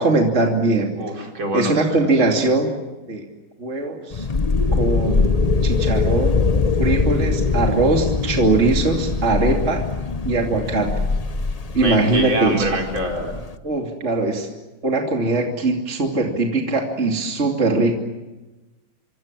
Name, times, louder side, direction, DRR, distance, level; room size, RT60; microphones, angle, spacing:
voice 1, 0.0-1.0 1.5-2.7 3.1-3.2 3.6-4.3 4.7-5.3 5.6-6.4 6.8-9.8 10.2-10.9 11.7-12.7 13.6-14.5 14.8-17.9, right 3 dB, 30° right, 1 dB, 3.0 m, -21 dB
voice 2, 1.0-2.0 11.8-13.3, right 1 dB, 65° right, 1 dB, 5.5 m, -25 dB
sound 1, 4.1-13.5, left 4 dB, 75° left, 0.3 m, -22 dB
26.5 x 26.0 x 7.5 m, 1.1 s
omnidirectional pair, 2.4 m